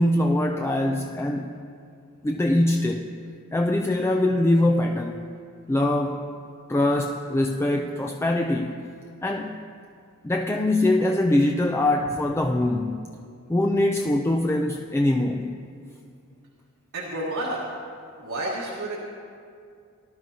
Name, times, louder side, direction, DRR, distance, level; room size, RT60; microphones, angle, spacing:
voice 1, 0.0-1.5 2.2-3.1 3.5-5.2 5.7-6.2 6.7-8.8 9.2-9.5 10.2-13.0 13.5-15.5, left 1 dB, 10° left, 2 dB, 0.4 m, -23 dB
voice 2, 16.9-17.7 18.2-19.0, right 1 dB, 70° right, -5 dB, 1.4 m, -30 dB
18.5 x 11.5 x 2.8 m, 2.4 s
head